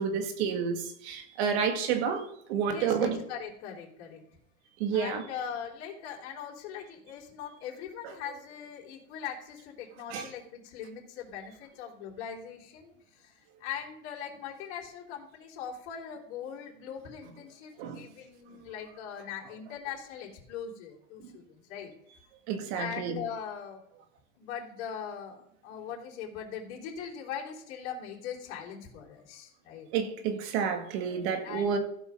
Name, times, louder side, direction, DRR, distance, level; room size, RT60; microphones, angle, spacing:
voice 1, 0.0-3.2 4.8-5.2 10.1-10.3 17.8-18.0 22.5-23.2 29.9-31.8, right 6 dB, 50° right, 2.1 m, -30 dB
voice 2, 2.7-4.2 4.9-21.9 22.7-23.8 24.4-29.9 31.4-31.8, left 8 dB, 50° left, 3.5 m, -41 dB
15.0 x 5.6 x 5.8 m
supercardioid pair, 140°, 40 cm